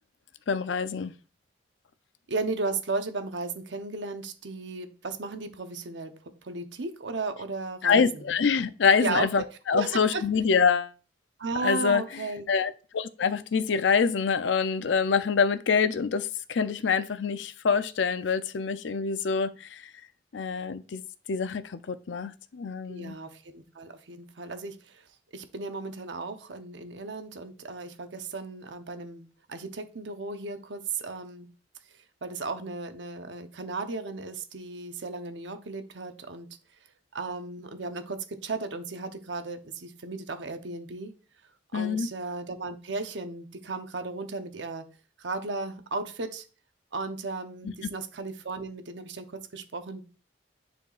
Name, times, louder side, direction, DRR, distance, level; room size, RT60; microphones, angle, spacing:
voice 1, 0.5-1.1 7.8-10.9 11.6-12.0 12.5-19.9 20.3-21.0 21.3-23.2 41.7-42.1, left 5 dB, 85° left, 0.5 m, -26 dB
voice 2, 2.3-8.3 9.0-9.4 9.7-10.2 11.4-12.5 22.9-31.5 32.2-36.5 37.1-41.1 41.7-44.8 45.2-46.4 46.9-50.0, right 3 dB, 80° right, 0.8 m, -35 dB
10.0 x 4.4 x 2.4 m
head